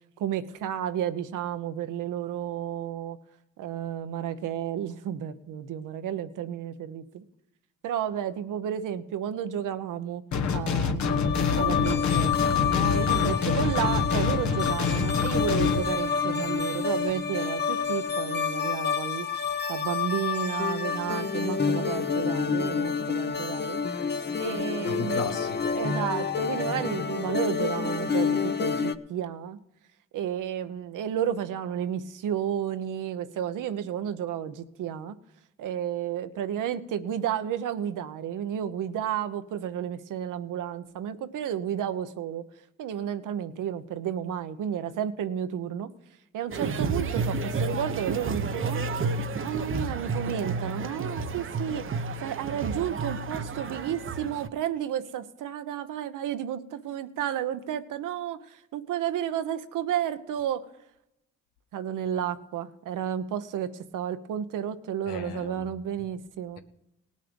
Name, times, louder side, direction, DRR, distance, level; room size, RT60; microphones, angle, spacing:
voice 1, 0.2-3.2 3.6-7.2 7.8-10.2 10.5-19.3 19.7-23.8 24.4-25.4 25.7-29.6 30.1-35.2 35.6-42.4 42.8-45.9 46.3-49.1 49.4-60.7 61.7-66.6, right 9 dB, 75° right, 1.0 m, -32 dB
sound 1, 10.3-15.8, left 5 dB, 60° left, 1.2 m, -27 dB
sound 2, 11.0-29.0, left 6 dB, 35° left, 0.8 m, -28 dB
voice 2, 24.9-25.8 65.1-65.6, left 6 dB, 85° left, 1.1 m, -35 dB
sound 3, 46.5-54.5, right 4 dB, 40° right, 0.8 m, -31 dB
18.5 x 6.5 x 5.3 m
supercardioid pair, 60°, 32 cm